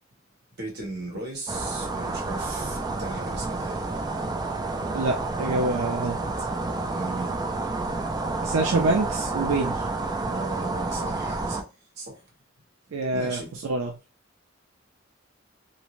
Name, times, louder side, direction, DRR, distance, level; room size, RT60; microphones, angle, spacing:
voice 1, 0.6-3.9 6.9-7.4 10.2-12.2 13.1-13.5, right 2 dB, 60° right, 1.3 m, -37 dB
sound 1, 1.5-11.6, right 3 dB, 20° right, 0.3 m, -29 dB
voice 2, 4.9-6.2 8.4-9.9 12.9-13.9, right 2 dB, 90° right, 0.4 m, -26 dB
2.7 x 2.1 x 3.0 m
head